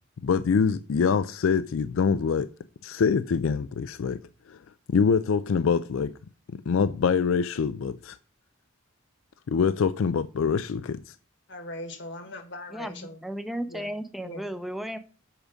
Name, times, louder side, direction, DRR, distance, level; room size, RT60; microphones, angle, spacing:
voice 1, 0.2-2.5 2.8-4.2 4.5-4.6 4.9-6.1 6.7-8.2 9.5-11.1, left 6 dB, 75° left, 0.4 m, -24 dB
voice 2, 11.5-13.2 13.7-13.9 14.2-14.4, left 1 dB, 60° left, 1.5 m, -39 dB
voice 3, 12.7-15.0, equal, ahead, 0.6 m, -34 dB
7.4 x 5.1 x 5.1 m
head